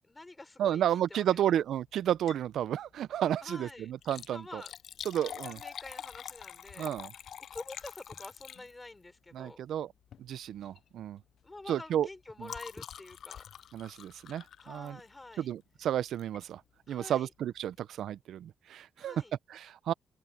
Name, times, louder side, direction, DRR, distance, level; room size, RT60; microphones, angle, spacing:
voice 1, 0.0-1.6 3.4-3.9 4.3-4.7 5.2-6.9 7.5-9.6 11.4-13.4 14.6-15.5 16.9-17.3 19.0-19.3, left 2 dB, 20° left, 3.6 m, -47 dB
voice 2, 0.6-4.6 5.1-5.6 6.8-7.1 9.3-9.9 10.2-11.2 11.7-12.1 12.4-12.5 13.7-15.0 15.4-16.6 16.9-19.2 19.5-19.9, right 10 dB, 85° right, 0.4 m, -32 dB
Liquid, 2.1-2.5 2.9-3.0 3.9-9.0 10.0-10.3 10.6-10.9 11.2-15.2 16.2-16.4 17.0-17.1 17.3-17.4, left 9 dB, 75° left, 0.3 m, -46 dB
open air
cardioid pair, 90°, 0 cm